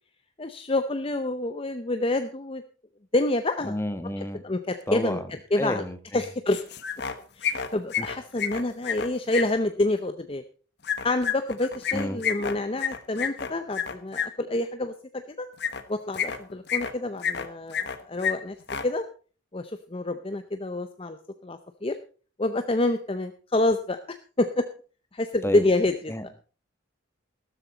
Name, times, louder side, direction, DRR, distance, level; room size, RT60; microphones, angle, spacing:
voice 1, 0.4-2.6 3.1-3.8 4.4-5.2 5.5-5.8 6.1-6.6 7.4-10.4 11.0-15.5 15.9-18.6 18.8-19.0 19.5-21.2 21.4-22.0 22.4-24.6 25.1-26.1, left 2 dB, 30° left, 9 dB, 0.6 m, -27 dB
voice 2, 3.6-4.4 4.9-5.3 5.6-6.2 8.0-8.1 11.9-12.2 25.4-25.6 26.1-26.3, equal, 10° left, 10 dB, 1.1 m, -30 dB
sound 1, 6.5-7.1 7.4-9.4 10.8-14.3 15.6-15.8 16.1-16.9 17.2-18.0 18.2-18.3 18.6-18.8, left 7 dB, 55° left, 1.2 m, -29 dB
13.0 x 13.0 x 4.1 m, 0.38 s
head